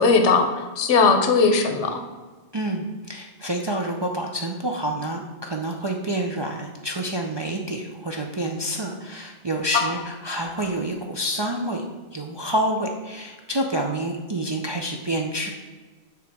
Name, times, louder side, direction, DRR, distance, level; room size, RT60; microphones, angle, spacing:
voice 1, 0.0-2.0 9.7-9.8, left 4 dB, 85° left, 6 dB, 1.1 m, -19 dB
voice 2, 2.5-11.8 12.1-15.5, right 1 dB, 40° right, 1 dB, 0.3 m, -28 dB
6.8 x 3.3 x 5.9 m, 1.3 s
omnidirectional pair, 1.2 m